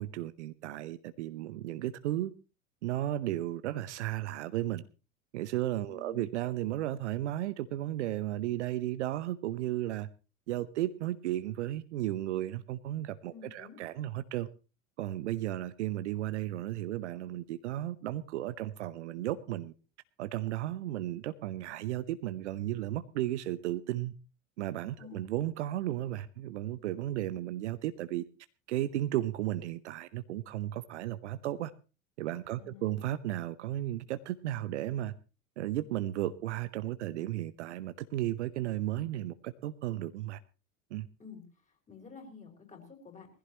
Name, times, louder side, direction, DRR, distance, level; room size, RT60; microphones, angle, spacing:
voice 1, 0.0-2.3 2.8-4.8 5.3-10.1 10.5-14.5 15.0-19.7 20.2-24.1 24.6-28.2 28.7-31.7 32.2-35.2 35.6-40.4 40.9-41.1, right 14 dB, 55° right, 14 dB, 0.8 m, -34 dB
voice 2, 5.9-6.3 13.3-13.8 25.0-25.2 32.5-33.1 41.2-41.4 41.9-43.3, left 6 dB, 20° left, 3 dB, 4.9 m, -50 dB
21.0 x 15.0 x 3.0 m, 0.33 s
figure-of-eight pair, 80°, 40 cm